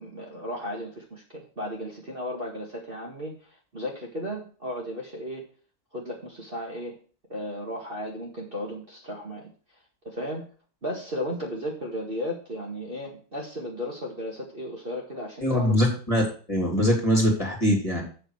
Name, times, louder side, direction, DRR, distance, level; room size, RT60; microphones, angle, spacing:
voice 1, 0.0-5.5 5.9-7.0 7.3-9.5 10.0-10.5 10.8-15.8, equal, 30° right, -5 dB, 2.0 m, -35 dB
voice 2, 15.4-16.2 16.5-18.0, equal, 15° left, -1 dB, 2.8 m, -22 dB
7.8 x 6.6 x 6.4 m, 0.40 s
omnidirectional pair, 2.1 m